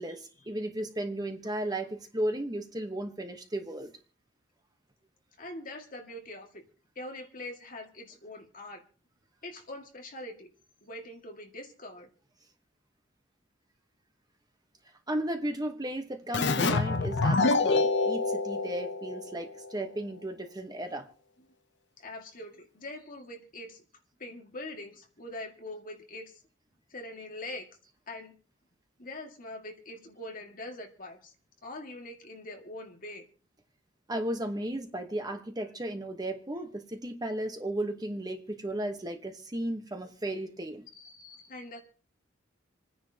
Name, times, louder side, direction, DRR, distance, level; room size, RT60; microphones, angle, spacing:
voice 1, 0.0-3.9 15.1-21.1 34.1-40.8, right 1 dB, 20° right, 1.1 m, -35 dB
voice 2, 5.4-6.6 7.0-8.8 9.4-10.5 10.8-12.1 22.0-23.8 24.2-26.4 26.9-27.7 28.1-28.3 29.0-31.3 31.6-33.2 40.9-41.8, left 1 dB, 45° left, 2.0 m, -43 dB
Keyboard (musical), 16.3-19.7, left 3 dB, 60° left, 0.8 m, -27 dB
28.0 x 10.0 x 2.9 m
head